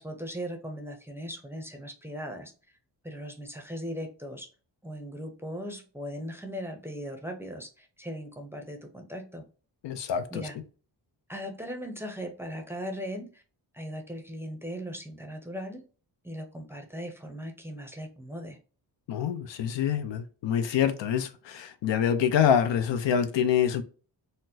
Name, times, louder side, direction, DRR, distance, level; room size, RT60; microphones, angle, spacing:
voice 1, 0.0-2.5 3.0-4.5 4.8-9.4 10.3-10.6 11.3-13.4 13.7-15.8 16.2-18.6, equal, 5° right, 0.5 m, -38 dB
voice 2, 9.8-10.5 19.1-23.8, left 8 dB, 75° left, 0.6 m, -26 dB
4.1 x 2.1 x 2.6 m
cardioid pair, 110°, 44 cm